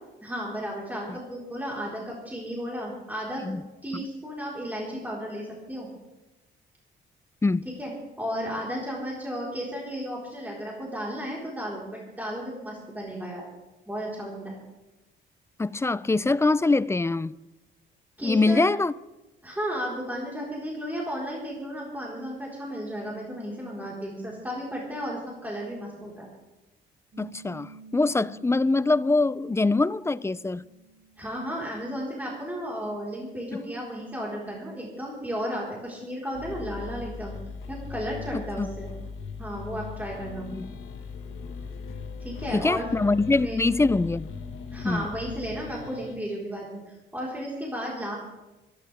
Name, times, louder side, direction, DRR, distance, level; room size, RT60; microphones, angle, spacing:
voice 1, 0.2-3.4 3.8-5.9 7.8-7.9 8.2-13.5 13.9-14.6 18.2-18.7 19.4-26.3 31.2-37.3 37.7-38.9 39.4-40.5 42.2-42.9 43.4-43.7 44.7-48.2, equal, 10° right, 4.4 m, -34 dB
voice 2, 15.6-17.4 18.2-18.9 27.2-30.7 38.3-38.7 40.5-40.7 42.5-44.3 44.9-45.0, left 3 dB, 15° left, 0.4 m, -24 dB
Piano, 27.1-32.2, right 4 dB, 50° right, 4.5 m, -51 dB
sound 1, 36.3-46.2, left 5 dB, 80° left, 1.8 m, -39 dB
25.5 x 12.0 x 3.5 m
cardioid pair, 90°, 20 cm